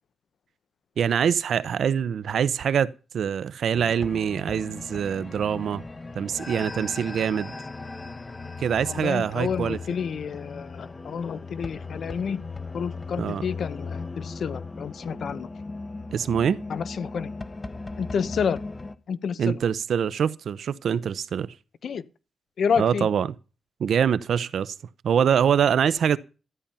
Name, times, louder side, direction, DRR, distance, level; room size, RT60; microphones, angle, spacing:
voice 1, 1.0-5.8 6.1-7.5 8.6-9.8 13.2-13.5 16.1-16.6 19.4-21.5 22.8-23.3 23.8-24.7 25.0-26.2, right 8 dB, 70° right, 0.8 m, -24 dB
sound 1, 3.7-18.9, left 3 dB, 20° left, 1.0 m, -38 dB
voice 2, 8.9-12.4 12.7-15.5 16.7-17.3 18.0-18.6 19.1-19.6 21.8-22.0 22.6-23.1, left 6 dB, 60° left, 0.9 m, -29 dB
13.5 x 10.5 x 5.6 m
wide cardioid pair, 150°, 0 cm